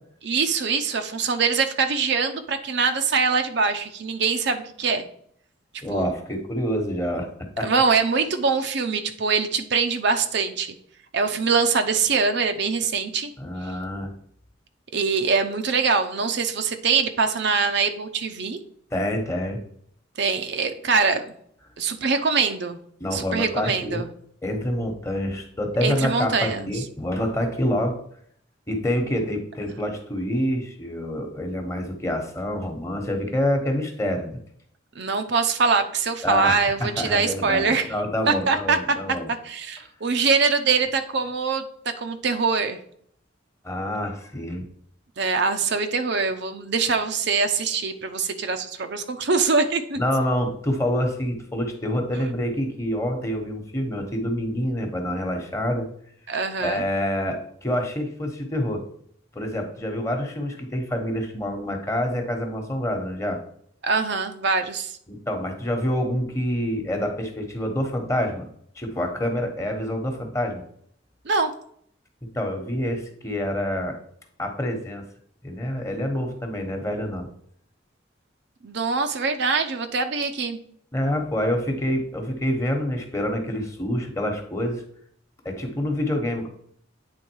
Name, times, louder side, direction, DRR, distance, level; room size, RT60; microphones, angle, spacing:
voice 1, 0.2-5.1 5.9-6.1 7.6-10.7 11.1-13.3 14.9-18.6 20.2-21.2 21.8-22.8 23.1-24.1 25.8-26.7 35.0-37.9 38.3-38.8 39.3-42.8 45.2-50.0 56.3-56.8 63.8-64.9 71.3-71.5 78.6-80.6, right 4 dB, 65° right, 7 dB, 0.7 m, -23 dB
voice 2, 5.8-7.3 7.6-7.7 13.4-14.1 18.9-19.6 23.0-24.0 24.4-28.0 28.7-34.4 36.2-39.3 43.6-44.7 50.0-55.9 56.6-58.8 59.3-63.4 65.1-68.5 68.8-70.6 72.2-74.0 74.4-75.0 75.4-77.3 80.9-84.8 85.4-86.5, equal, 15° left, 4 dB, 1.1 m, -27 dB
8.8 x 3.7 x 4.6 m, 0.64 s
head